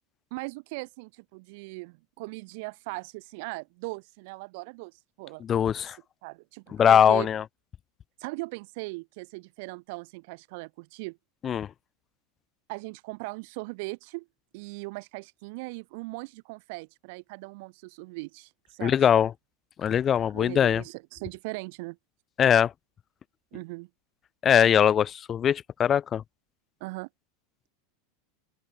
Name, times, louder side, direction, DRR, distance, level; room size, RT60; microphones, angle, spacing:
voice 1, 0.3-5.4 6.2-7.3 8.2-11.2 12.7-14.3 14.5-19.0 20.3-22.0 23.5-23.9 26.8-27.1, right 27 dB, 50° right, 5.4 m, -39 dB
voice 2, 5.4-6.0 6.8-7.4 11.4-11.7 18.8-19.3 19.8-20.8 22.4-22.7 24.4-26.2, left 9 dB, 20° left, 0.5 m, -21 dB
open air
supercardioid pair, 175°, 0 cm